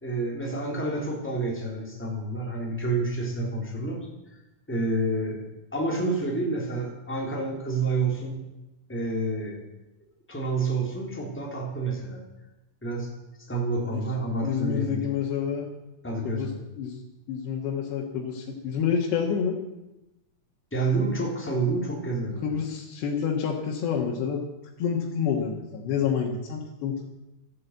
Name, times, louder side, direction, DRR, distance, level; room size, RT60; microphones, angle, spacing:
voice 1, 0.0-4.0 4.7-5.4 5.7-8.4 8.9-9.6 10.3-12.2 12.8-13.1 13.5-15.1 16.0-16.5 20.7-22.4, right 2 dB, 5° left, -1 dB, 2.7 m, -28 dB
voice 2, 14.4-15.7 16.3-16.5 16.8-17.0 17.3-19.6 22.4-24.4 24.8-27.1, left 7 dB, 85° left, -2 dB, 3.7 m, -28 dB
13.0 x 12.0 x 8.0 m, 0.97 s
omnidirectional pair, 4.7 m